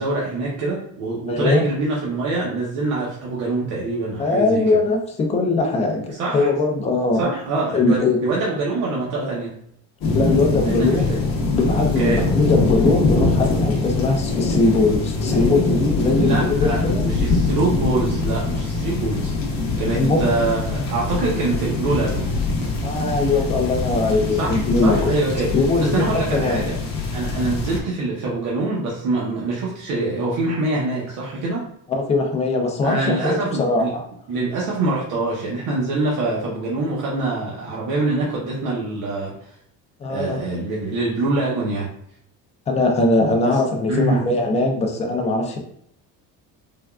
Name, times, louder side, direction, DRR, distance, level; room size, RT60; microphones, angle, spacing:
voice 1, 0.0-4.6 6.1-6.5 7.1-9.5 10.6-11.2 12.0-12.2 16.2-22.3 24.4-25.5 25.8-26.7 27.1-31.6 32.8-33.9 34.3-39.5 40.1-41.9 43.4-43.6 43.9-44.2, right 2 dB, 60° right, -5 dB, 0.7 m, -24 dB
voice 2, 1.3-1.6 4.2-7.3 7.7-8.2 10.1-11.1 11.5-17.0 19.9-20.2 22.8-25.1 25.5-26.0 26.3-26.7 31.9-34.0 40.0-40.4 42.7-45.6, left 3 dB, 20° left, 2 dB, 0.3 m, -21 dB
sound 1, 10.0-27.8, left 3 dB, 55° left, 0.7 m, -23 dB
3.4 x 2.2 x 2.3 m, 0.69 s
cardioid pair, 170°, 34 cm